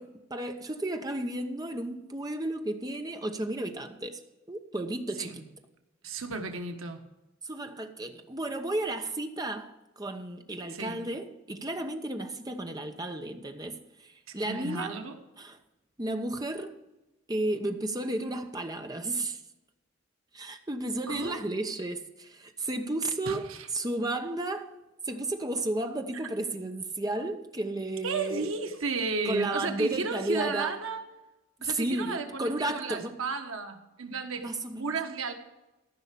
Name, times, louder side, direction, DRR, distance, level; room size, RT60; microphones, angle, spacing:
voice 1, 0.0-4.2 4.5-5.4 7.4-15.0 15.4-15.6 16.0-16.8 17.3-19.4 20.3-23.5 23.7-24.7 25.1-28.5 29.2-30.7 31.6-33.2 34.4-34.9, right 2 dB, 20° right, 1.0 m, -33 dB
voice 2, 6.0-7.1 10.7-11.0 14.4-15.1 21.1-21.4 23.3-23.7 26.1-26.2 28.0-31.0 31.6-34.5 34.8-35.3, right 4 dB, 85° right, 1.4 m, -33 dB
14.5 x 5.7 x 8.4 m
head